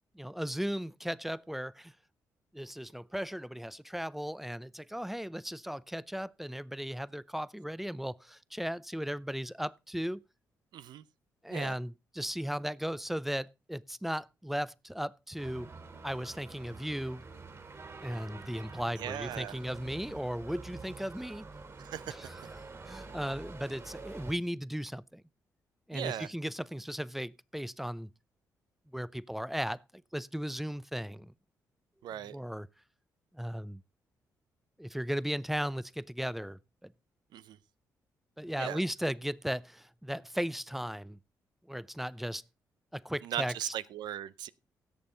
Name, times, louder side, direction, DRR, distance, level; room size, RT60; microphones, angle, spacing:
voice 1, 0.1-1.9 2.5-10.2 11.4-15.7 16.0-17.2 18.0-21.5 22.1-22.4 22.9-25.2 25.9-28.1 28.9-29.8 30.1-31.3 32.3-32.7 33.3-33.8 34.8-36.9 38.4-41.2 41.7-42.4 42.9-43.7, equal, 5° right, 0.5 m, -36 dB
voice 2, 10.7-11.0 11.5-11.8 19.0-19.6 21.8-22.2 25.9-26.3 32.0-32.4 37.3-37.6 38.6-38.8 43.2-44.5, right 11 dB, 80° right, 0.5 m, -38 dB
sound 1, 15.4-24.3, right 4 dB, 45° right, 3.4 m, -47 dB
16.5 x 6.9 x 3.9 m
supercardioid pair, 60°, 7 cm